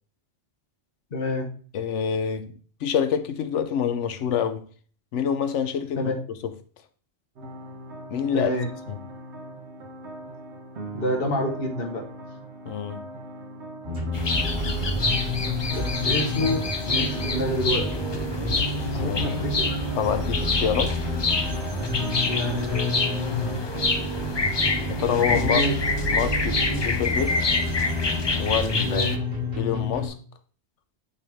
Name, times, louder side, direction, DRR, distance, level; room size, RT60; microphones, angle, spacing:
voice 1, 1.1-1.5 6.0-6.1 8.3-8.7 10.9-12.0 15.7-17.8 18.9-19.8 22.2-23.7 25.3-25.8 28.8-29.2, left 1 dB, 55° left, 1.4 m, -28 dB
voice 2, 1.7-2.5 2.8-4.7 5.1-6.1 8.1-8.6 8.9-9.0 12.7-13.1 18.9-19.4 20.0-20.9 24.9-25.6 26.1-27.4 28.4-29.1 29.6-30.1, left 8 dB, 85° left, 1.0 m, -26 dB
sound 1, 7.4-23.5, right 1 dB, 75° right, 1.2 m, -39 dB
sound 2, 13.8-30.1, left 1 dB, 45° right, 3.4 m, -29 dB
sound 3, 14.1-29.2, left 3 dB, 35° left, 0.4 m, -27 dB
8.7 x 3.3 x 3.5 m
omnidirectional pair, 1.2 m